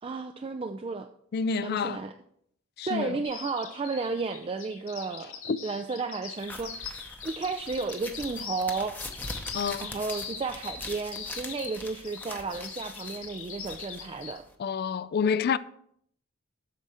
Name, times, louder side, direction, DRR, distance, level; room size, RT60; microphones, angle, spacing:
voice 1, 0.0-1.1 1.6-2.1 2.9-9.0 9.8-14.4, right 4 dB, 25° right, 0.3 m, -33 dB
voice 2, 1.3-2.0 2.8-3.2 5.5-5.6 9.5-9.9 14.6-15.6, left 6 dB, 50° left, 0.3 m, -28 dB
Bird vocalization bird call bird song, 3.2-14.4, left 7 dB, 80° left, 2.3 m, -41 dB
sound 1, 6.4-14.5, left 2 dB, 10° left, 0.7 m, -43 dB
8.1 x 6.3 x 4.2 m
head